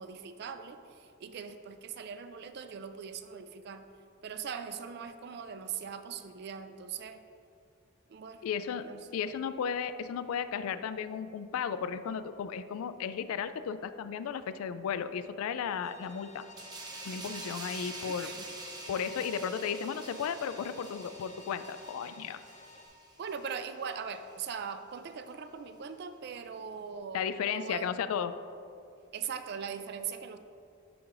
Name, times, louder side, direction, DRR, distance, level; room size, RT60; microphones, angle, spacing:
voice 1, 0.0-3.8 4.2-7.2 8.1-8.4 8.8-9.2 18.0-18.5 23.2-28.0 29.1-30.4, right 6 dB, 50° right, 9 dB, 0.3 m, -41 dB
voice 2, 8.4-8.9 9.1-16.4 17.0-18.3 18.9-22.4 27.1-28.3, left 7 dB, 85° left, 13 dB, 0.3 m, -34 dB
sound 1, 15.8-22.9, left 1 dB, 35° left, 0.6 m, -52 dB
sound 2, 16.6-23.7 24.1-24.3, right 2 dB, 20° right, 0.7 m, -46 dB
11.0 x 4.8 x 2.5 m, 2.6 s
head